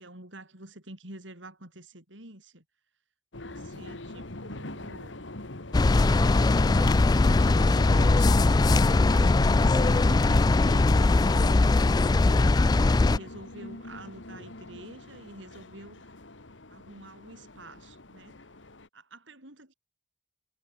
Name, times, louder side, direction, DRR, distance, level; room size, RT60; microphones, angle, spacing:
voice 1, 0.0-2.6 3.4-5.2 5.9-8.4 8.7-11.8 12.2-16.1 16.7-18.4 18.9-19.7, right 1 dB, 85° right, 7.6 m, -47 dB
sound 1, 3.3-18.9, left 2 dB, 80° left, 2.2 m, -41 dB
sound 2, 5.7-13.2, left 3 dB, 20° left, 0.3 m, -21 dB
head